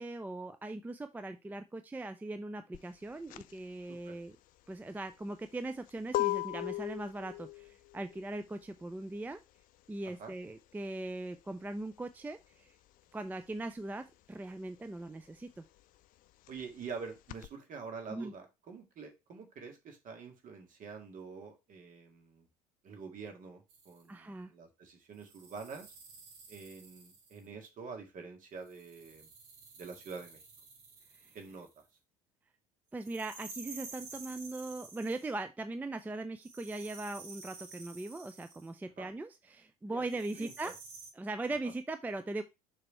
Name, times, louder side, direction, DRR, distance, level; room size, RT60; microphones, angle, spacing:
voice 1, 0.0-4.3 4.7-9.4 9.9-12.8 13.1-15.6 18.1-18.3 24.1-24.5 31.2-31.4 32.9-40.7 41.2-42.4, right 2 dB, 10° right, 9 dB, 0.4 m, -40 dB
sound 1, 2.7-13.0 13.3-17.5, left 18 dB, 45° left, 0.4 m, -40 dB
voice 2, 16.5-22.5 22.8-26.0 26.5-29.3 29.8-30.4 31.3-31.7 39.0-39.1 39.9-40.1 40.4-40.7 41.6-41.7, right 5 dB, 40° right, 4 dB, 1.9 m, -46 dB
sound 2, 23.7-24.0 25.2-27.5 28.6-31.8 33.0-35.4 36.4-38.7 40.0-41.1, right 4 dB, 60° right, 2.0 m, -51 dB
6.7 x 3.5 x 4.3 m, 0.24 s
figure-of-eight pair, 65°, 20 cm